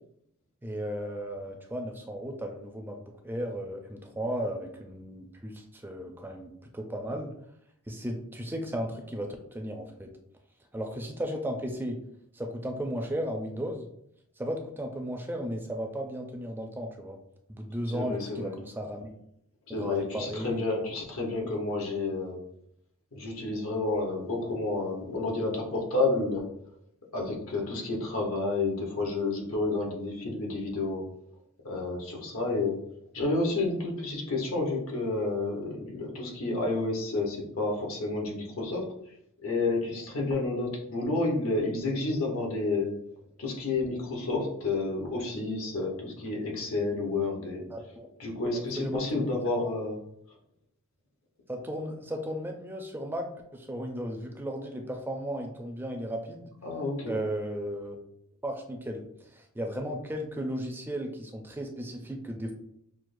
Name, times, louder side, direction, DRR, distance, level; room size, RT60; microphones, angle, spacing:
voice 1, 0.6-3.0 3.2-7.3 7.9-10.1 10.7-12.0 12.3-13.9 14.4-17.2 17.6-19.1 19.8-20.6 21.2-21.3 47.7-48.1 48.5-49.7 51.5-56.5 57.0-58.0 58.4-59.0 59.3-62.5, equal, 10° right, 2 dB, 0.4 m, -35 dB
voice 2, 17.9-18.5 19.7-22.4 23.1-26.5 27.1-31.0 31.6-32.8 33.1-38.9 39.4-42.9 43.4-47.6 48.2-50.0 56.6-57.1, left 3 dB, 70° left, -1 dB, 1.0 m, -30 dB
6.0 x 2.1 x 2.6 m, 0.73 s
head